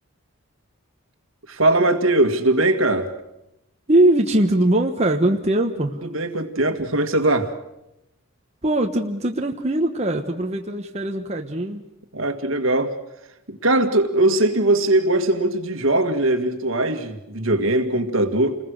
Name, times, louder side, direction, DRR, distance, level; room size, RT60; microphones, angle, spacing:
voice 1, 1.5-3.1 6.1-7.5 12.1-13.0 13.5-18.6, right 2 dB, 65° right, 7 dB, 2.0 m, -20 dB
voice 2, 3.9-6.0 8.6-11.8, right 1 dB, 30° right, 2 dB, 1.2 m, -21 dB
29.0 x 21.0 x 6.5 m, 0.88 s
head